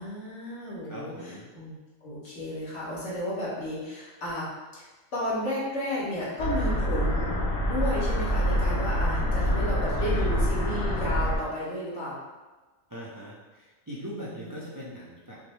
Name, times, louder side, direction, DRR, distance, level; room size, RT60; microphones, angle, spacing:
voice 1, 0.0-12.2 14.2-14.5, left 1 dB, 60° left, -8 dB, 1.6 m, -33 dB
voice 2, 0.8-1.5 9.4-9.5 10.0-10.3 10.5-11.0 12.9-15.4, equal, 30° right, -7 dB, 0.3 m, -41 dB
sound 1, 6.4-11.4, equal, 85° left, 1.3 m, -26 dB
5.7 x 2.1 x 3.2 m, 1.2 s
omnidirectional pair, 1.4 m